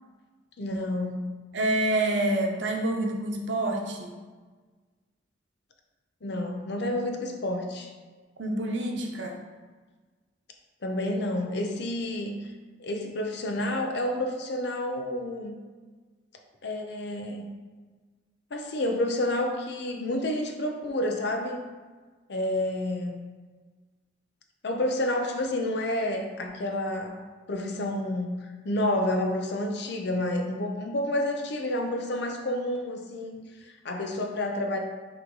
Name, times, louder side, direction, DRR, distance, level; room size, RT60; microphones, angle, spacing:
voice 1, 0.6-1.2 6.2-7.9 10.8-12.4 12.8-15.6 16.6-17.5 18.5-21.7 22.3-23.2 24.6-27.2 27.5-28.4 28.6-34.8, left 1 dB, 65° left, 3 dB, 0.7 m, -29 dB
voice 2, 1.5-4.1 8.4-9.4, right 1 dB, 75° right, 2 dB, 0.9 m, -27 dB
6.2 x 3.3 x 4.6 m, 1.4 s
head